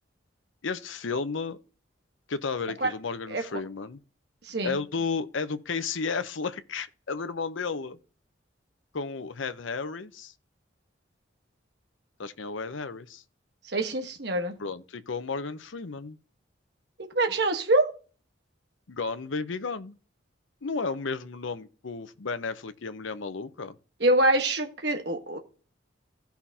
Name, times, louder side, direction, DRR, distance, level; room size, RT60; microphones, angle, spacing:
voice 1, 0.6-1.6 2.3-4.0 4.6-8.0 8.9-10.3 12.2-13.2 14.6-16.2 18.9-20.0 20.6-23.8, left 4 dB, 80° left, 0.7 m, -33 dB
voice 2, 4.4-4.8 13.7-14.6 17.0-17.9 24.0-25.4, right 1 dB, 55° right, 1.3 m, -25 dB
16.0 x 5.8 x 2.8 m
head